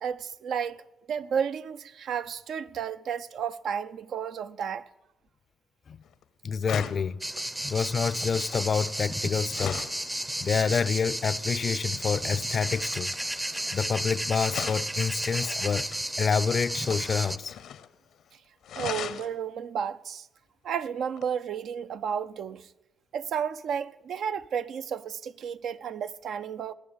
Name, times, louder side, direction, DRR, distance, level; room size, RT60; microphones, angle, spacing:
voice 1, 0.0-0.8 1.1-4.8 18.8-20.3 20.6-22.6 23.1-26.7, right 7 dB, 65° right, 0.6 m, -32 dB
sound 1, 6.0-6.2 6.6-10.1 12.0-14.1 14.5-16.0 16.7-17.9 18.2-18.3 18.6-19.3 21.2-21.3, left 9 dB, 75° left, 0.8 m, -40 dB
voice 2, 6.4-7.2 7.6-9.8 10.4-13.1 13.7-15.9 16.2-17.6, left 6 dB, 50° left, 0.5 m, -28 dB
sound 2, 7.2-17.4, right 1 dB, 10° right, 0.6 m, -33 dB
20.0 x 7.0 x 8.5 m
cardioid pair, 90°, 0 cm